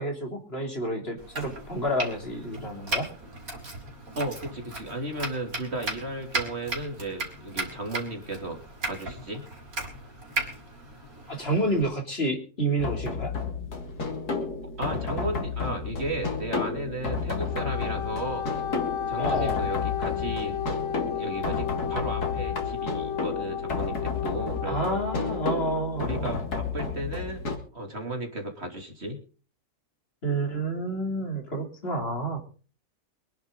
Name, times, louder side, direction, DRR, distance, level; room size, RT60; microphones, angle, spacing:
voice 1, 0.0-3.1 11.3-13.3 19.2-19.7 24.6-26.4 30.2-32.4, right 1 dB, 40° left, 3 dB, 3.3 m, -29 dB
Domestic sounds home sounds, 1.2-11.8, right 2 dB, 65° right, 4.6 m, -36 dB
voice 2, 4.1-8.6 8.8-9.4 14.8-18.5 19.1-20.6 21.1-25.0 26.0-27.4 27.7-29.2, right 1 dB, 40° right, 3 dB, 3.2 m, -34 dB
sound 1, 12.8-27.6, left 4 dB, 85° left, 3.1 m, -32 dB
Wind instrument woodwind instrument, 17.4-25.4, left 9 dB, 60° left, 1.3 m, -33 dB
24.0 x 10.5 x 4.0 m, 0.39 s
omnidirectional pair, 1.6 m